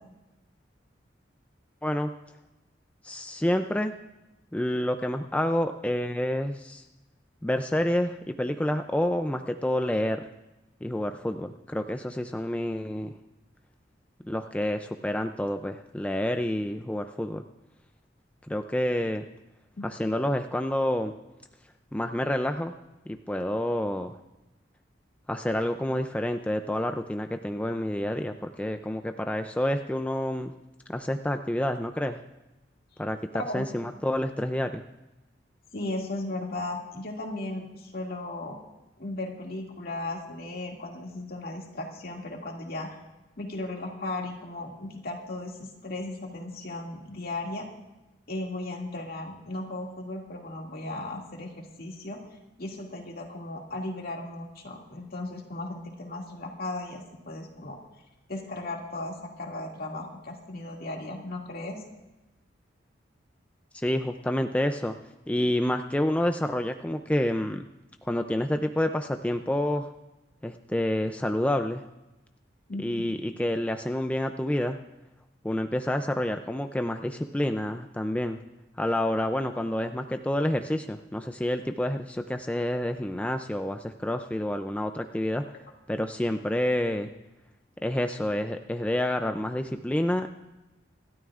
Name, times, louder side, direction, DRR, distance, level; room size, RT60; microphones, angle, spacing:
voice 1, 3.0-3.9 4.5-6.8 7.4-10.2 10.8-13.1 14.2-17.4 18.5-19.3 19.8-21.1 21.9-22.7 23.1-24.2 25.3-30.5 30.9-32.2 33.0-33.2 33.5-34.8 63.7-65.0 65.3-67.7 68.0-69.9 70.4-71.8 72.8-74.8 75.4-78.4 78.8-85.4 85.9-87.1 87.8-90.4, left 1 dB, 10° left, 6 dB, 0.4 m, -28 dB
voice 2, 35.7-38.6 39.0-42.9 43.4-47.7 48.3-52.2 52.6-57.8 58.3-61.8 72.7-72.9, left 2 dB, 55° left, 0 dB, 2.3 m, -36 dB
26.0 x 12.5 x 2.5 m, 1.0 s
head